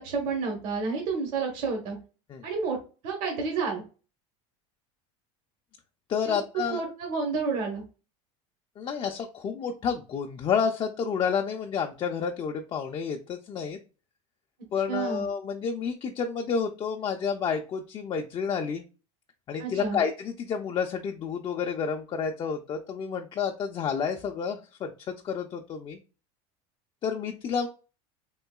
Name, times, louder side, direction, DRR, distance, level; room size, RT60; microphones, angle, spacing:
voice 1, 0.0-2.0 2.4-2.8 3.0-3.8 6.3-6.4 6.7-7.8 14.9-15.2 19.6-20.0, right 4 dB, 65° right, 2 dB, 1.1 m, -30 dB
voice 2, 6.1-6.8 8.8-13.8 14.7-18.8 19.5-26.0 27.0-27.7, left 6 dB, 30° left, 3 dB, 0.4 m, -30 dB
3.7 x 2.6 x 2.3 m, 0.34 s
supercardioid pair, 110°, 16 cm